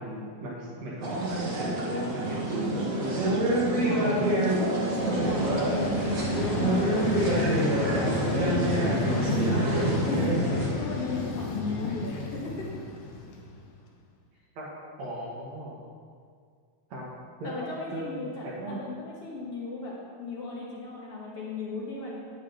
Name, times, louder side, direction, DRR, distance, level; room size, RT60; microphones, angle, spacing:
voice 1, 0.0-3.6 14.6-14.7 15.0-15.8 16.9-17.1 17.4-18.8, right 1 dB, 65° right, -5 dB, 2.8 m, -37 dB
sound 1, 1.0-10.7, right 1 dB, 85° right, 0.7 m, -26 dB
voice 2, 3.8-10.5 10.7-12.7 17.4-22.2, left 3 dB, 60° left, -4 dB, 2.1 m, -37 dB
Vehicle, 4.8-13.8, left 4 dB, 80° left, 2.3 m, -32 dB
10.0 x 8.9 x 3.5 m, 2.1 s
omnidirectional pair, 3.4 m